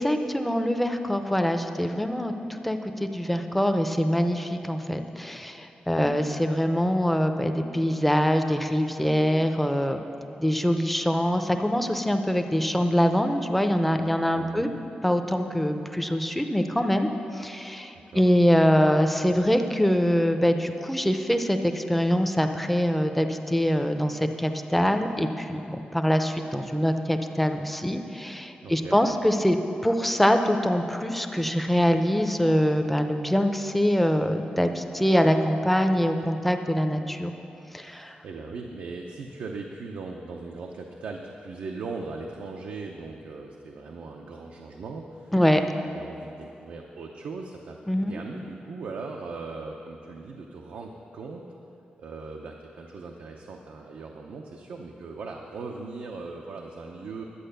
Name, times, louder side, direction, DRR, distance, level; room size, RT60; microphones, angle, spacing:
voice 1, 0.0-10.0 10.4-14.7 15.0-29.6 29.8-37.3 37.7-38.2 45.3-45.6 47.9-48.2, equal, 5° left, 6 dB, 0.6 m, -24 dB
voice 2, 14.3-14.7 18.1-18.3 28.6-29.0 37.8-45.3 45.9-47.8 48.1-51.4 52.0-57.2, right 4 dB, 80° right, 1 dB, 0.7 m, -39 dB
11.0 x 8.5 x 6.7 m, 2.9 s
wide cardioid pair, 150°, 3 cm